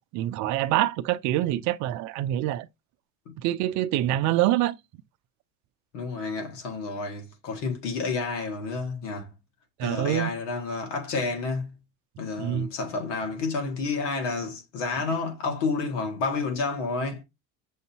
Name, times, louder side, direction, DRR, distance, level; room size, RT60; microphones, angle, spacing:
voice 1, 0.1-2.7 3.4-4.7 9.8-10.3 12.4-12.7, right 14 dB, 55° right, 0.5 m, -25 dB
voice 2, 5.9-9.3 9.8-11.7 12.2-17.2, left 4 dB, 90° left, 1.9 m, -30 dB
6.4 x 2.7 x 2.7 m
supercardioid pair, 105°, 36 cm